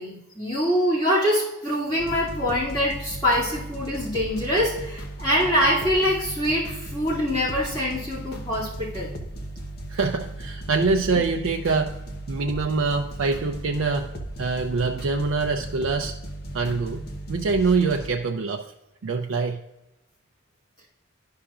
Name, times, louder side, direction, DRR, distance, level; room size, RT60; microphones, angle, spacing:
voice 1, 0.0-9.2, equal, 20° left, -8 dB, 2.4 m, -24 dB
sound 1, 2.0-18.1, right 1 dB, 50° left, 0.9 m, -36 dB
voice 2, 9.9-12.0 12.3-14.1 14.4-16.1 16.5-17.0 17.3-18.7 19.0-19.6, right 4 dB, 85° right, 3 dB, 0.4 m, -24 dB
11.5 x 5.7 x 2.4 m, 0.95 s
head